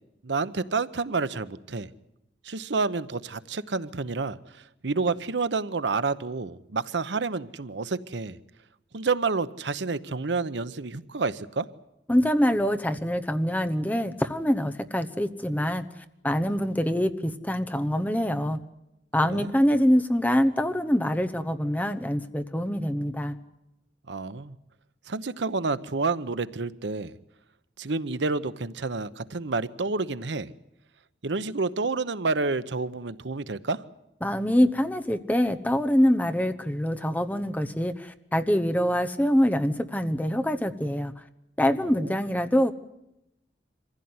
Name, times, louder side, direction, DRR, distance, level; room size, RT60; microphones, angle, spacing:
voice 1, 0.2-1.9 2.4-8.4 8.9-11.7 19.3-19.5 24.1-24.5 25.1-27.1 27.8-30.5 31.2-33.8 41.8-42.2, right 4 dB, 75° right, 0.9 m, -29 dB
voice 2, 12.1-15.8 16.2-18.6 19.1-23.4 34.2-41.1 41.6-42.7, equal, 10° left, 0.9 m, -24 dB
24.5 x 15.5 x 9.5 m
head